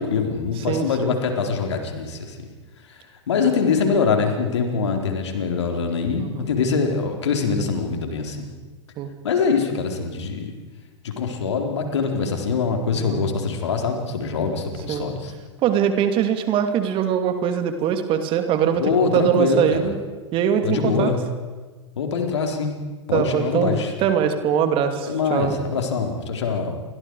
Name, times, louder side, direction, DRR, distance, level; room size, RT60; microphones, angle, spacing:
voice 1, 0.0-2.5 2.9-3.0 3.3-8.5 9.2-10.5 11.0-15.3 18.8-19.9 20.6-21.2 22.0-22.7 23.1-23.9 25.1-26.8, left 5 dB, 70° left, 3 dB, 4.1 m, -23 dB
voice 2, 0.7-1.2 6.2-6.5 9.0-9.1 12.9-13.3 14.9-15.1 15.6-20.0 20.3-21.1 23.1-23.7 24.0-25.6, right 8 dB, 35° right, 7 dB, 2.7 m, -22 dB
29.5 x 24.0 x 4.9 m, 1.4 s
figure-of-eight pair, 100°, 15 cm